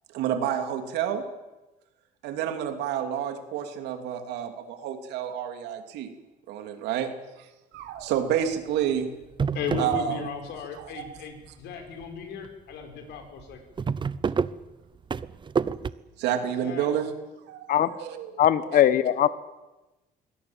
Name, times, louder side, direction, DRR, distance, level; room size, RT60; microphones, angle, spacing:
voice 1, 0.1-1.2 2.2-6.1 6.5-7.1 7.4-9.1 9.8-10.2 10.7-11.2 16.2-17.1 17.5-18.3 18.7-18.8, right 9 dB, 90° right, 7 dB, 3.2 m, -29 dB
sound 1, 8.0-8.4 8.8-8.9 9.2-10.5 10.8-11.5 12.0-12.2 12.4-12.5 12.8-12.9 13.2-15.9, right 6 dB, 30° right, 0.8 m, -29 dB
voice 2, 9.5-13.6 16.6-16.9, left 5 dB, 80° left, 5 dB, 5.5 m, -36 dB
voice 3, 18.4-19.3, left 11 dB, 55° left, 14 dB, 1.2 m, -20 dB
24.0 x 18.0 x 9.0 m, 1.1 s
cardioid pair, 110°, 17 cm